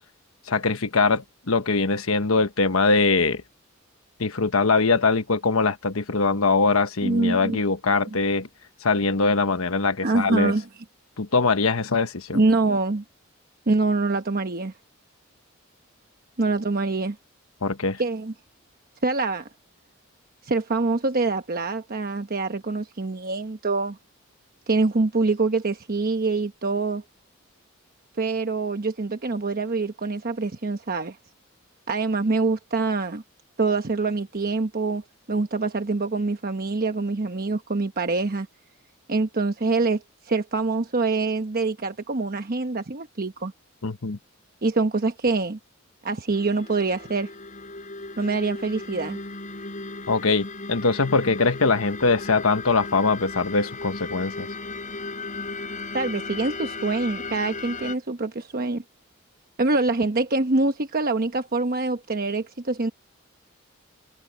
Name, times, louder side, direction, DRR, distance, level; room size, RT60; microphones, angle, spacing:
voice 1, 0.5-3.4 4.2-8.5 8.8-10.5 11.2-12.4 17.6-18.0 43.8-44.2 50.1-54.5, left 4 dB, 90° left, 1.2 m, -22 dB
voice 2, 7.0-7.6 8.1-8.2 10.0-10.6 12.3-13.0 13.7-14.7 16.4-17.2 18.0-18.3 19.0-19.5 20.4-24.0 24.7-27.0 28.2-31.2 31.9-33.2 33.6-38.5 39.1-43.5 44.6-45.6 46.0-47.3 48.2-49.2 55.9-58.8 59.6-62.9, right 3 dB, 45° right, 1.0 m, -25 dB
sound 1, 46.3-57.9, left 3 dB, 40° left, 4.9 m, -36 dB
head